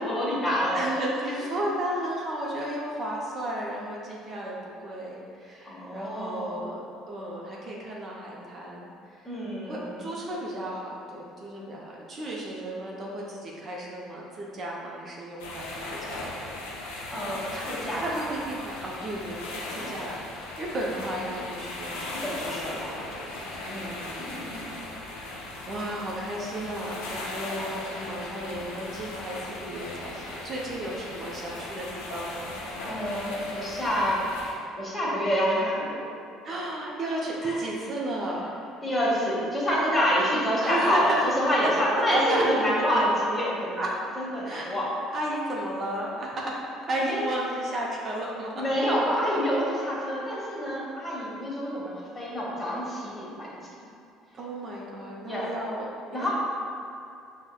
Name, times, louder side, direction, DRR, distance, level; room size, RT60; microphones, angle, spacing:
voice 1, 0.0-0.8 5.6-6.6 9.2-10.1 17.1-18.0 19.7-19.9 22.0-22.9 23.7-24.6 32.9-34.2 34.8-36.1 37.4-37.6 38.8-43.8 44.2-44.9 47.1-47.2 48.5-53.6 55.2-55.5 56.1-56.3, equal, 20° left, -6 dB, 1.1 m, -27 dB
voice 2, 0.7-4.6 4.8-8.9 9.2-9.3 9.7-16.6 16.9-17.2 17.5-17.6 18.0-32.6 32.9-33.1 36.4-38.6 40.6-41.2 41.6-41.7 42.1-42.6 43.8-44.0 44.4-44.7 45.1-46.6 46.9-48.5 54.4-56.3, right 1 dB, 45° right, -3 dB, 0.5 m, -34 dB
sound 1, 15.4-34.5, left 2 dB, 85° left, 0.4 m, -38 dB
4.7 x 2.1 x 2.2 m, 2.5 s
hypercardioid pair, 70°, 0 cm